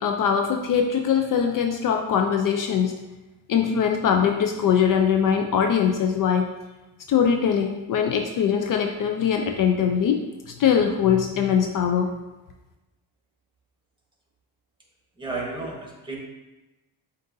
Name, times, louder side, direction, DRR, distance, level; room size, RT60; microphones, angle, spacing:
voice 1, 0.0-2.9 3.5-6.5 7.1-10.2 10.6-12.1, left 7 dB, 55° left, 4 dB, 0.5 m, -22 dB
voice 2, 15.2-16.2, right 3 dB, 10° right, -2 dB, 1.3 m, -32 dB
7.6 x 2.6 x 2.6 m, 1.1 s
cardioid pair, 95°, 40 cm